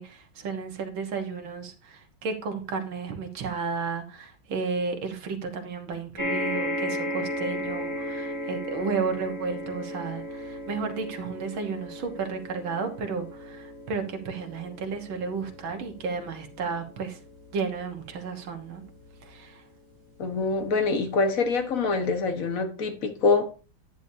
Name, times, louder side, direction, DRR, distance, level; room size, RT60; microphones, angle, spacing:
voice 1, 0.0-17.2 17.5-18.8 19.2-19.6, right 5 dB, 80° right, 5 dB, 2.2 m, -33 dB
sound 1, 6.2-20.7 21.5-21.6 21.8-21.9, equal, 15° right, 2.4 m, -36 dB
voice 2, 20.2-23.5, left 4 dB, 45° left, 6 dB, 1.7 m, -25 dB
10.5 x 9.6 x 2.8 m, 0.34 s
omnidirectional pair, 2.2 m